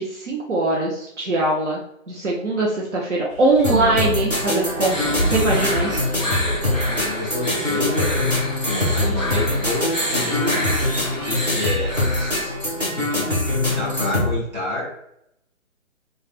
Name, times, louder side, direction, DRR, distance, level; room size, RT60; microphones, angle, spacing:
voice 1, 0.0-1.8 2.1-6.0, right 2 dB, 60° right, -4 dB, 0.7 m, -22 dB
sound 1, 3.3-11.9, equal, 30° left, 0.6 m, -34 dB
sound 2, 3.6-14.3, left 1 dB, 15° right, 0.7 m, -23 dB
sound 3, 4.9-12.5, equal, 5° left, 1.2 m, -30 dB
voice 2, 6.6-8.2 8.9-10.9 11.2-13.3 13.7-14.9, left 2 dB, 35° right, -4 dB, 1.1 m, -29 dB
3.2 x 2.4 x 2.4 m, 0.77 s
figure-of-eight pair, 140°, 41 cm